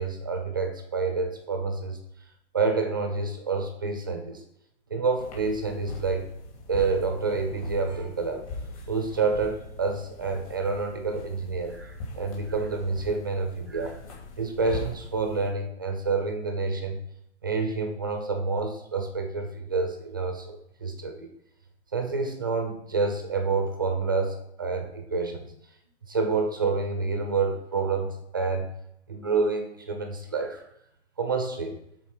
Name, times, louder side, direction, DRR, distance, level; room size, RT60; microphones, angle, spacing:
voice 1, 0.0-2.0 2.5-4.4 4.9-6.3 6.7-8.5 8.9-14.0 14.4-17.0 17.4-21.3 21.9-25.6 26.1-28.7 29.1-30.7 31.2-31.8, right 4 dB, 20° right, 5 dB, 0.5 m, -28 dB
sound 1, 5.2-15.5, left 2 dB, 30° left, 2.6 m, -41 dB
11.5 x 4.2 x 4.8 m, 0.76 s
hypercardioid pair, 170°, 34 cm